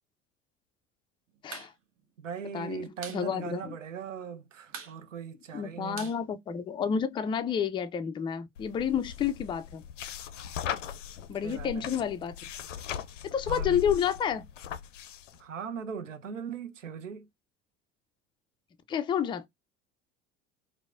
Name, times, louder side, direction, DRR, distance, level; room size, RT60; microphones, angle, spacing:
sound 1, 1.4-1.7 2.0-2.1 2.4-3.2 3.6-3.7 3.9-4.3 4.7-7.0, right 6 dB, 35° right, 0.8 m, -44 dB
voice 1, 2.2-6.1 11.4-12.0 13.5-13.8 15.4-17.3, right 7 dB, 85° right, 0.5 m, -39 dB
voice 2, 3.1-3.7 5.5-9.8 11.3-12.3 13.2-14.4 18.9-19.5, left 8 dB, 15° left, 0.3 m, -30 dB
sound 2, 8.6-15.4, left 9 dB, 80° left, 0.5 m, -39 dB
4.5 x 2.0 x 2.4 m
figure-of-eight pair, 65°, 37 cm